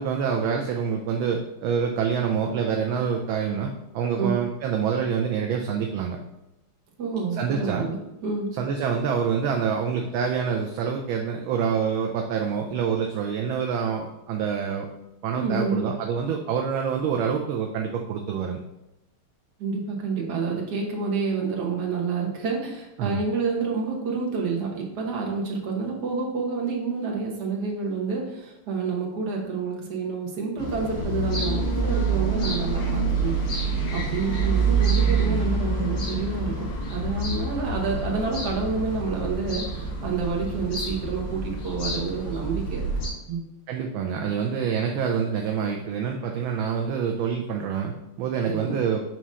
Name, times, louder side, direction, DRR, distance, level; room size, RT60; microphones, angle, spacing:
voice 1, 0.0-6.2 7.4-7.9 8.5-14.9 15.2-18.6 23.0-23.2 43.7-49.0, right 7 dB, 75° right, 2 dB, 1.3 m, -26 dB
voice 2, 7.0-8.5 15.3-15.9 19.6-33.4 33.9-42.9 43.3-43.4 48.4-48.8, right 4 dB, 55° right, -1 dB, 1.6 m, -28 dB
sound 1, 30.6-43.1, right 3 dB, 85° left, 2.7 m, -27 dB
6.1 x 3.0 x 5.4 m, 0.91 s
omnidirectional pair, 2.4 m